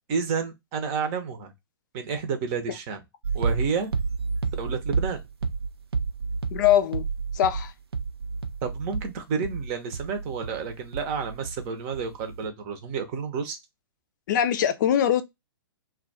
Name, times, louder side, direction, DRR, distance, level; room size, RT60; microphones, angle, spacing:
voice 1, 0.1-1.5 1.9-3.0 3.3-3.9 4.6-5.2 8.6-13.6, right 5 dB, 35° right, 0.7 m, -30 dB
sound 1, 3.2-11.7 11.9-12.5, right 4 dB, 80° right, 0.6 m, -30 dB
voice 2, 6.5-7.1 7.3-7.7 14.3-15.2, left 10 dB, 50° left, 0.4 m, -22 dB
2.3 x 2.2 x 3.9 m
figure-of-eight pair, 115°, 13 cm